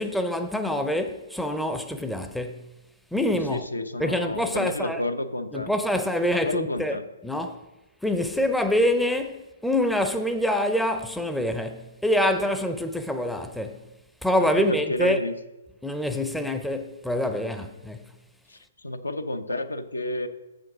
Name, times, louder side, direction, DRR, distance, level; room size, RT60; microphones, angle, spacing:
voice 1, 0.0-2.7 3.1-3.7 4.0-5.0 5.5-7.6 8.0-13.9 14.2-15.2 15.8-18.1, left 1 dB, ahead, 0.5 m, -26 dB
voice 2, 3.5-5.7 6.3-7.1 14.4-15.3 18.5-20.3, left 1 dB, 85° left, 0.6 m, -30 dB
7.3 x 5.1 x 6.0 m
figure-of-eight pair, 125°, 0 cm